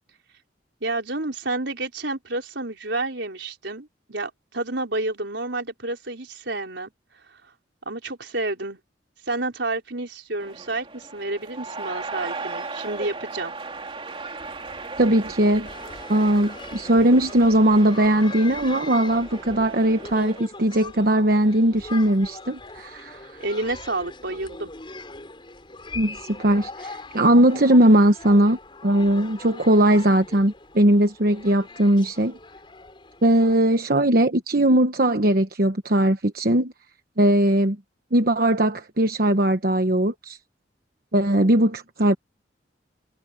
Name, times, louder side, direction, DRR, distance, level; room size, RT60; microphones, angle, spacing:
voice 1, 0.8-6.9 7.3-7.4 7.9-8.8 9.3-13.5 23.4-24.7, right 2 dB, 70° right, 4.5 m, -30 dB
sound 1, 10.4-20.4, right 3 dB, 30° right, 3.1 m, -37 dB
voice 2, 15.0-15.7 16.1-23.2 25.9-32.3 33.2-36.7 37.2-37.8 38.1-40.4 41.1-42.1, right 1 dB, 55° right, 1.1 m, -19 dB
sound 2, 15.6-33.5, left 3 dB, 25° left, 5.3 m, -41 dB
head